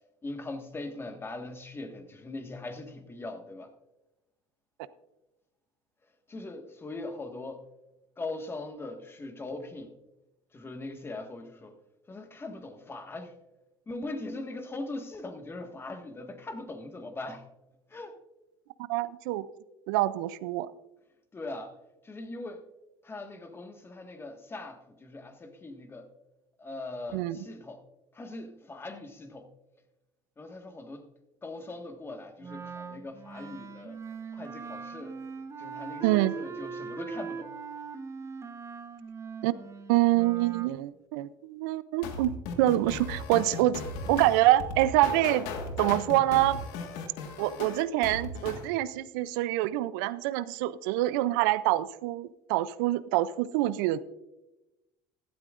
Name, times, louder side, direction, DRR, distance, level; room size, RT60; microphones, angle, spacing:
voice 1, 0.2-3.7 6.3-7.6 8.2-10.0 10.5-11.8 12.1-13.3 13.9-17.4 17.9-18.2 21.3-21.7 22.0-22.6 23.0-26.1 26.6-27.8 28.1-29.5 30.4-31.1 31.4-34.0 34.3-35.2 35.6-37.5, left 2 dB, 20° left, 1.6 m, -40 dB
voice 2, 18.9-19.4 19.9-20.7 27.1-27.4 36.0-36.4 39.4-39.5 39.9-42.3 42.6-43.8 44.1-45.5 45.8-46.6 47.4-54.0, right 15 dB, 85° right, 0.4 m, -26 dB
Wind instrument woodwind instrument, 32.4-40.7, right 5 dB, 25° right, 1.0 m, -41 dB
sound 1, 42.0-48.7, left 4 dB, 80° left, 1.6 m, -37 dB
15.5 x 12.0 x 2.5 m
supercardioid pair, 100°, 11 cm